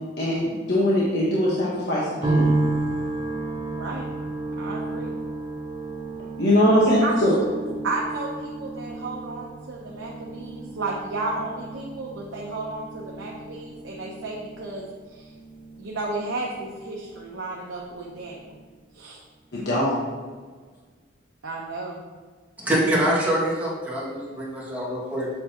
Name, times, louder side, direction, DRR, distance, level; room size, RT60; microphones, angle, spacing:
voice 1, 0.2-2.5 6.4-7.4 19.5-19.9, equal, 60° left, -7 dB, 1.3 m, -21 dB
sound 1, 2.2-17.5 17.7-18.6, right 2 dB, 25° right, 0.7 m, -32 dB
voice 2, 3.7-4.1 4.6-5.1 7.0-7.1 7.8-15.3 15.8-18.6 18.9-19.2 21.4-22.0, right 3 dB, 85° right, -3 dB, 0.9 m, -33 dB
voice 3, 22.6-25.3, right 1 dB, 10° right, -7 dB, 2.1 m, -25 dB
7.8 x 6.9 x 3.0 m, 1.4 s
head